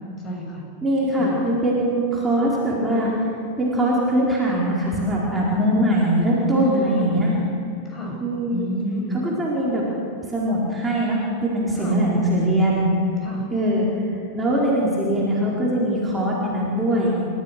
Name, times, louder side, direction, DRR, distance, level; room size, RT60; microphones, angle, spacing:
voice 1, 0.2-0.6 1.2-1.4 6.5-7.3 7.8-8.2 8.5-9.2 11.8-12.0 13.2-13.4, equal, 25° left, 0 dB, 7.1 m, -30 dB
voice 2, 0.8-3.1 3.6-7.3 8.2-8.6 9.2-9.8 10.3-12.8 13.5-13.9 14.3-17.2, right 1 dB, 10° right, -5 dB, 4.4 m, -21 dB
29.5 x 15.0 x 6.7 m, 2.5 s
figure-of-eight pair, 90°, 0 cm